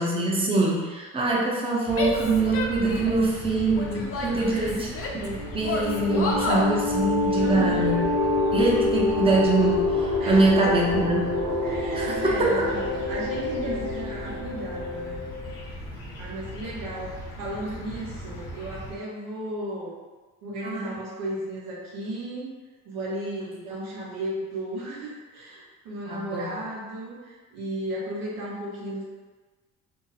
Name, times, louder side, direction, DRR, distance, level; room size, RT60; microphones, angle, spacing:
voice 1, 0.0-4.9 5.1-8.1 8.5-11.3 12.0-12.7 13.5-13.8 20.6-20.9 26.1-26.6, right 2 dB, 15° right, -3 dB, 0.7 m, -24 dB
sound 1, 1.9-18.9, equal, 70° left, 1.0 m, -39 dB
Female speech woman speaking / Yell, 1.9-3.3 3.7-5.3 5.6-6.7, left 3 dB, 40° left, 0.6 m, -30 dB
voice 2, 4.2-5.0 7.3-8.0 10.2-11.0 11.6-15.2 16.2-20.0 20.4-22.5 22.8-29.0, right 1 dB, 85° right, -5 dB, 1.0 m, -35 dB
sound 2, 5.4-15.6, left 2 dB, 50° right, 0.9 m, -27 dB
2.7 x 2.0 x 4.0 m, 1.3 s
supercardioid pair, 80°, 33 cm